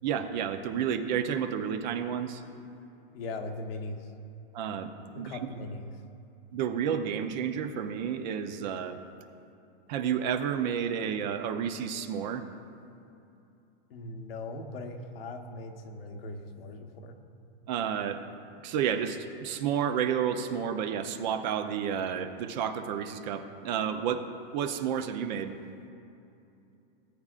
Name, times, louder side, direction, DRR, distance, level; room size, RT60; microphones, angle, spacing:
voice 1, 0.0-2.4 4.5-5.3 6.5-9.0 9.9-12.4 17.7-18.2 18.6-24.3 24.5-25.6, right 8 dB, 50° right, 8 dB, 0.8 m, -31 dB
voice 2, 3.1-4.1 5.1-6.0 13.9-17.2, left 2 dB, 80° left, 4 dB, 1.2 m, -39 dB
18.5 x 8.8 x 2.5 m, 2.7 s
hypercardioid pair, 145°, 29 cm